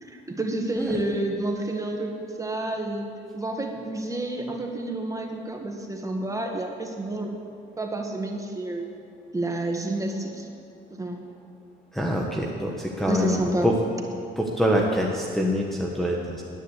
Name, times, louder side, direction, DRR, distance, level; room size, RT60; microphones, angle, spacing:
voice 1, 0.0-3.1 3.3-7.3 7.8-8.9 9.3-10.5 11.0-11.2 13.1-13.7, right 2 dB, 15° right, 2 dB, 1.8 m, -29 dB
voice 2, 11.9-13.8 14.4-16.4, equal, ahead, -2 dB, 1.3 m, -25 dB
10.0 x 10.0 x 8.2 m, 2.5 s
cardioid pair, 90°, 20 cm